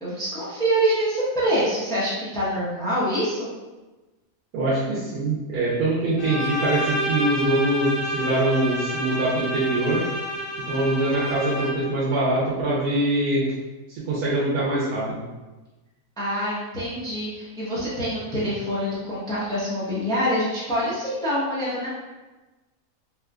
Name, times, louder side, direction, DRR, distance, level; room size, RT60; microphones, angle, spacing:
voice 1, 0.0-3.5 16.2-21.9, equal, 5° left, -9 dB, 0.6 m, -25 dB
voice 2, 4.5-10.0 10.7-13.5 13.9-15.2, right 1 dB, 80° right, -8 dB, 1.2 m, -23 dB
Bowed string instrument, 6.2-12.0, equal, 70° left, 0.4 m, -29 dB
3.5 x 2.7 x 2.3 m, 1.2 s
omnidirectional pair, 1.6 m